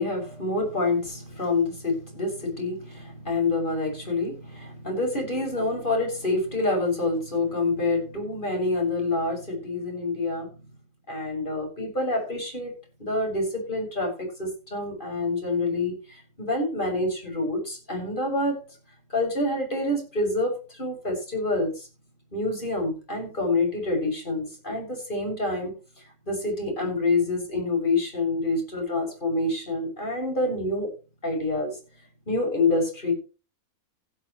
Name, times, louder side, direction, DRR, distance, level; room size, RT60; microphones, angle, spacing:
voice 1, 0.0-10.6 11.1-12.7 13.0-18.6 19.1-21.9 22.3-25.7 26.3-30.9 31.2-31.7 32.3-33.1, left 2 dB, 35° left, 1 dB, 6.9 m, -27 dB
16.0 x 12.5 x 3.2 m, 0.33 s
omnidirectional pair, 1.5 m